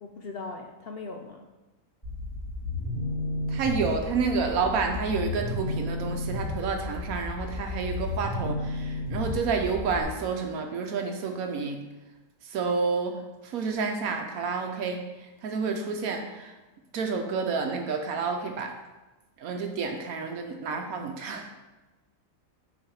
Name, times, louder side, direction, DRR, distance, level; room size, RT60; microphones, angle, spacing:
voice 1, 0.0-1.5, left 3 dB, 65° left, 4 dB, 0.6 m, -39 dB
sound 1, 2.0-10.0, left 2 dB, 10° left, 2.4 m, -33 dB
voice 2, 3.5-11.8 12.5-16.5 16.9-18.7 19.4-21.5, right 5 dB, 80° right, 4 dB, 1.2 m, -29 dB
6.5 x 4.9 x 4.6 m, 1.1 s
omnidirectional pair, 1.5 m